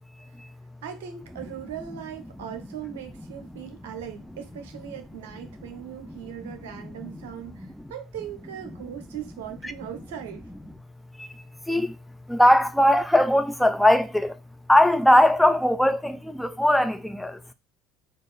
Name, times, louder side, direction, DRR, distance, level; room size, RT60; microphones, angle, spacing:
voice 1, 0.8-10.5, right 9 dB, 75° right, 0.7 m, -39 dB
voice 2, 6.8-7.3 7.6-7.9 9.6-9.7 11.2-11.3 11.7-12.0 12.3-14.4 14.7-17.4, left 1 dB, 5° left, 0.4 m, -20 dB
4.3 x 2.4 x 3.2 m
hypercardioid pair, 70°, 0 cm